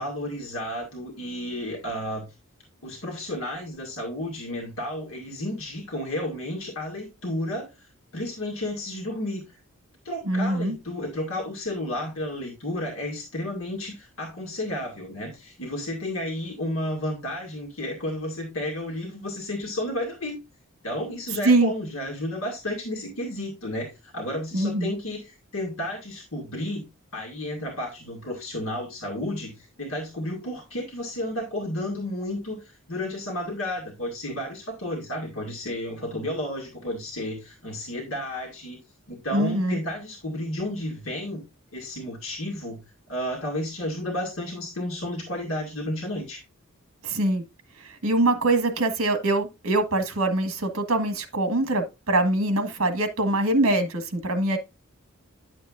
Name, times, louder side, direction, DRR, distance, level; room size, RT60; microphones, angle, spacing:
voice 1, 0.0-2.3 2.8-9.4 10.0-20.4 20.8-26.9 27.1-38.8 39.1-41.4 41.7-42.8 43.1-46.4, left 1 dB, 70° left, 2.0 m, -32 dB
voice 2, 10.2-10.7 21.4-21.7 24.5-24.9 39.3-39.8 47.0-47.4 47.8-54.6, right 2 dB, 80° right, 1.5 m, -23 dB
10.0 x 6.8 x 2.5 m
head